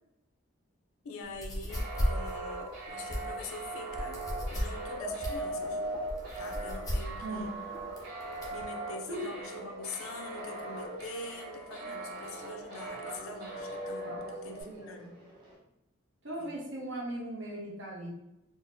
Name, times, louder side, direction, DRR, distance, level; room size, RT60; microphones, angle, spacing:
voice 1, 1.0-5.8 6.4-7.5 8.5-15.1 16.4-16.5, left 3 dB, 90° left, 4 dB, 0.5 m, -44 dB
sound 1, 1.3-8.6, equal, 15° left, 0.4 m, -36 dB
sound 2, 1.7-14.6, right 2 dB, 50° right, 1.4 m, -39 dB
Conversation, 5.5-15.5, right 1 dB, 20° right, 0.7 m, -55 dB
voice 2, 7.2-7.5 9.1-9.2 14.0-15.1 16.2-18.1, right 1 dB, 65° right, -2 dB, 0.8 m, -39 dB
3.8 x 2.1 x 2.5 m, 0.87 s
head